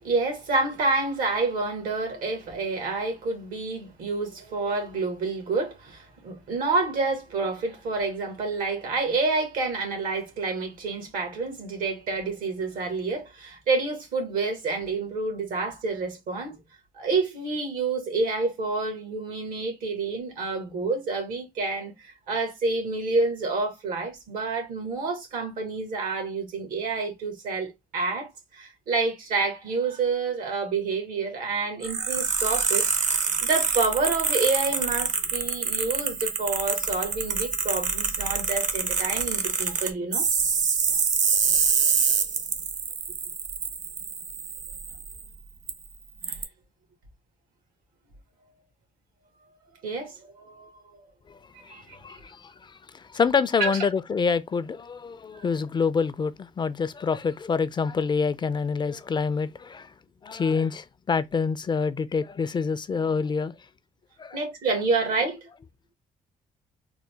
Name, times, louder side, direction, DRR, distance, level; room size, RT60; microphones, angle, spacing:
voice 1, 0.0-16.6 16.9-32.8 33.4-40.3 40.8-40.9 46.3-46.4 49.8-50.7 51.5-51.9 53.6-53.8 55.3-55.4 64.3-65.5, right 3 dB, 85° right, 1.5 m, -28 dB
sound 1, 31.8-45.2 45.7-45.8 46.2-46.4, right 6 dB, 60° right, 0.8 m, -26 dB
voice 2, 51.3-59.9 60.2-63.6 64.2-64.4, left 5 dB, 30° left, 0.4 m, -27 dB
3.9 x 2.1 x 3.3 m
cardioid pair, 80°, 14 cm